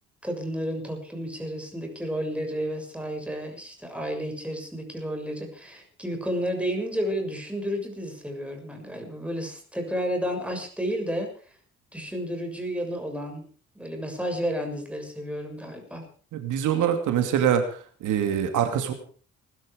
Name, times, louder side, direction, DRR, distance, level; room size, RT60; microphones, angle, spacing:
voice 1, 0.2-11.3 11.9-13.4 13.7-16.0, equal, 5° right, 4 dB, 6.8 m, -31 dB
voice 2, 16.3-18.9, right 9 dB, 85° right, 6 dB, 2.6 m, -24 dB
20.0 x 13.0 x 5.1 m, 0.43 s
cardioid pair, 90°, 30 cm